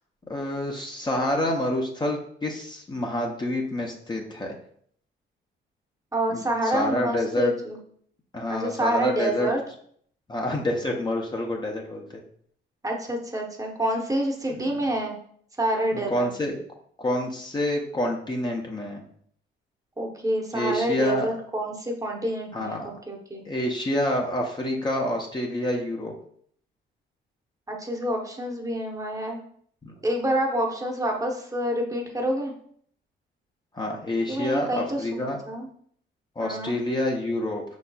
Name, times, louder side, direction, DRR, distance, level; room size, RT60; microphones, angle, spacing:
voice 1, 0.3-4.6 6.3-7.5 8.3-9.5 10.3-12.2 14.7-14.8 15.9-16.6 17.0-19.0 20.5-21.3 22.5-22.9 23.5-26.1 29.8-29.9 33.7-35.4 36.4-37.6, left 1 dB, 20° left, 0 dB, 0.7 m, -28 dB
voice 2, 6.1-7.8 8.5-9.6 12.8-15.1 15.6-16.3 20.0-23.4 27.7-29.4 30.0-32.5 34.3-35.7 36.4-36.8, right 1 dB, 15° right, 1 dB, 0.9 m, -27 dB
5.3 x 4.1 x 2.3 m, 0.63 s
cardioid pair, 90°, 20 cm